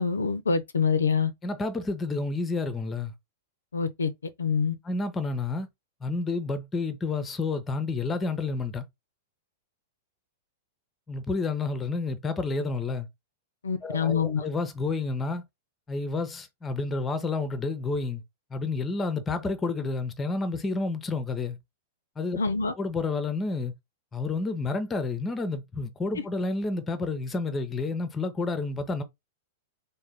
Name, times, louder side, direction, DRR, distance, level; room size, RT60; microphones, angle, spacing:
voice 1, 0.0-1.3 3.7-4.1 4.4-4.8 13.6-14.5 22.4-22.7 26.2-26.3, left 5 dB, 75° left, 0.4 m, -25 dB
voice 2, 1.4-3.1 4.8-5.7 6.0-8.9 11.1-13.1 13.8-15.4 15.9-18.2 18.5-21.6 22.2-22.4 22.8-23.7 24.1-29.0, left 3 dB, 15° left, 0.6 m, -30 dB
3.6 x 2.1 x 3.4 m
figure-of-eight pair, 100°, 0 cm